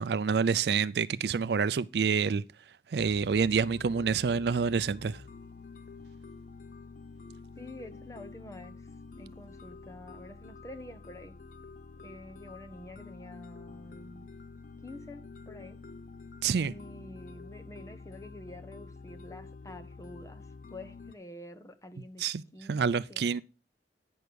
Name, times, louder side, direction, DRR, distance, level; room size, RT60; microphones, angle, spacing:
voice 1, 0.0-2.4 2.9-5.2 16.4-16.7 22.2-22.4 22.7-23.4, right 6 dB, 70° right, 0.4 m, -27 dB
sound 1, 3.0-21.2, left 4 dB, 50° left, 0.5 m, -48 dB
voice 2, 7.6-8.8 9.2-11.3 12.0-14.3 14.8-15.8 16.6-20.4 20.7-22.3 22.5-23.4, left 1 dB, 20° left, 0.8 m, -48 dB
9.4 x 6.2 x 5.1 m
head